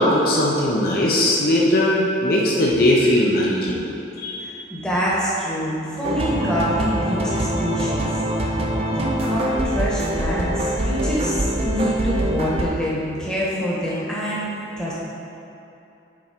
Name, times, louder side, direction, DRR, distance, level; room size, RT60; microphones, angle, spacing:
voice 1, 0.0-3.9 4.2-4.4, left 1 dB, 50° left, -3 dB, 0.7 m, -19 dB
voice 2, 4.4-8.1 8.9-14.5 14.8-14.9, equal, 5° left, -7 dB, 1.1 m, -25 dB
sound 1, 6.0-12.6, right 1 dB, 30° right, 0.4 m, -24 dB
6.2 x 4.4 x 4.4 m, 2.8 s
head